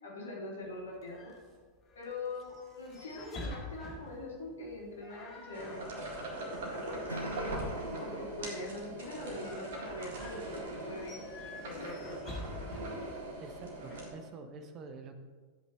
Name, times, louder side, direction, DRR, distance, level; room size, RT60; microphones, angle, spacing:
voice 1, 0.0-1.3 1.9-6.0 6.7-11.2 11.4-12.1, left 2 dB, 65° left, -3 dB, 2.7 m, -43 dB
sound 1, 0.6-14.0, left 2 dB, 30° left, 2.1 m, -49 dB
sound 2, 5.5-14.1, right 1 dB, 55° right, 2.0 m, -41 dB
Acoustic guitar / Strum, 7.1-10.2, right 1 dB, 90° left, 0.3 m, -46 dB
voice 2, 13.1-15.1, right 4 dB, 35° right, 7 dB, 1.0 m, -48 dB
13.5 x 8.3 x 3.1 m, 1.5 s
figure-of-eight pair, 90°, 0 cm